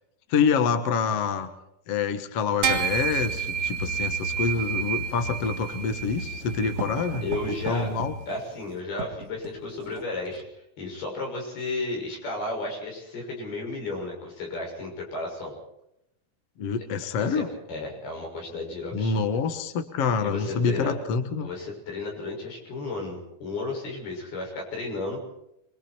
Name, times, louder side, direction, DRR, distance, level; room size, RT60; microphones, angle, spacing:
voice 1, 0.3-1.5 1.9-8.1 16.6-17.5 18.9-21.5, left 5 dB, 55° left, 8 dB, 2.0 m, -26 dB
sound 1, 2.6-8.2, right 5 dB, 70° right, 1.0 m, -30 dB
Writing, 4.6-10.5, right 5 dB, 50° right, 3.5 m, -40 dB
voice 2, 7.2-8.0 8.3-10.4 10.8-15.5 17.2-19.4 20.2-20.9 21.4-25.2, left 2 dB, 75° left, 1 dB, 8.3 m, -33 dB
26.0 x 23.5 x 4.5 m, 0.80 s
omnidirectional pair, 4.4 m